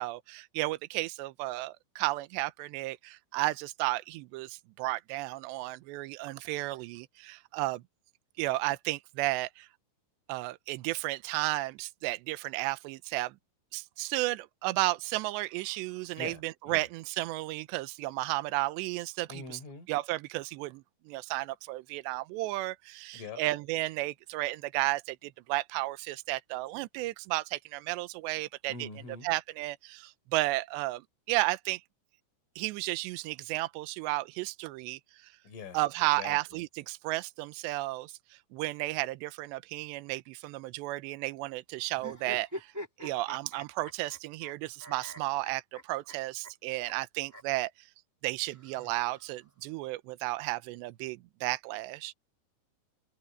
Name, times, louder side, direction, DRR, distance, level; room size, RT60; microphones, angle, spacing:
voice 1, 0.0-7.8 8.4-9.7 10.3-13.3 13.7-19.6 19.9-28.9 29.2-31.0 31.3-31.8 32.6-35.0 35.7-38.1 38.5-42.7 43.0-47.7 48.2-52.1, right 20 dB, 75° right, 2.8 m, -33 dB
voice 2, 16.2-16.9 19.3-19.9 23.1-23.4 28.7-29.3 35.4-35.8 36.1-36.6, left 5 dB, 90° left, 8.3 m, -44 dB
sound 1, 42.0-44.5 44.8-46.1 46.4-46.5 46.8-46.9 47.3-47.4 48.5-49.5, equal, 5° right, 2.5 m, -44 dB
open air
omnidirectional pair, 5.5 m